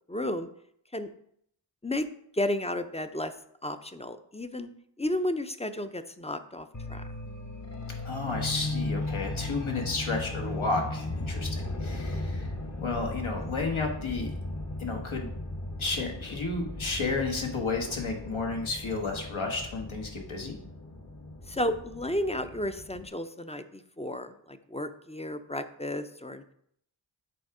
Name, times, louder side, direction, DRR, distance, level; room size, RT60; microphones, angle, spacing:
voice 1, 0.1-0.5 0.9-1.1 1.8-2.1 2.3-3.3 3.6-4.7 5.0-7.0 12.1-12.5 21.5-26.4, left 1 dB, 15° left, 10 dB, 0.5 m, -33 dB
sound 1, 6.7-23.1, left 2 dB, 35° left, 0.9 m, -37 dB
voice 2, 8.0-12.5 12.8-14.3 14.8-15.3 15.8-20.5, left 3 dB, 80° left, 1 dB, 1.4 m, -32 dB
7.7 x 3.5 x 4.8 m, 0.69 s
wide cardioid pair, 45°, 48 cm